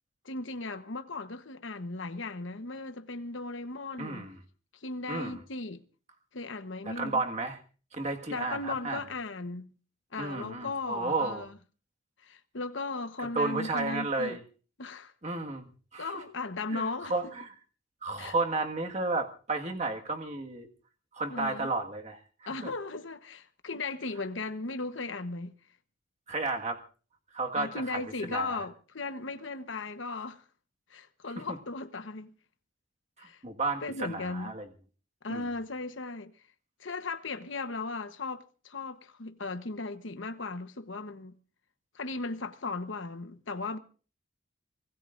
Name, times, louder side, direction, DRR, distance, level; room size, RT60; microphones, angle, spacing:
voice 1, 0.2-4.3 4.7-5.8 6.3-7.2 8.3-9.7 10.1-11.6 12.2-14.4 14.8-15.1 16.0-17.1 18.2-18.3 21.3-21.7 22.5-25.5 27.6-30.4 30.9-32.3 33.2-33.4 33.8-34.5 35.2-36.3 36.8-41.4 41.9-43.8, left 3 dB, 70° left, 1.1 m, -37 dB
voice 2, 4.0-4.4 5.1-5.4 6.9-7.6 7.9-9.0 10.2-11.5 13.2-14.4 15.2-16.2 16.7-17.5 18.0-20.7 21.1-22.2 22.6-22.7 26.3-26.8 27.3-28.7 33.2-34.7 35.3-35.4, right 3 dB, 35° right, 1.8 m, -33 dB
24.5 x 18.5 x 2.6 m
head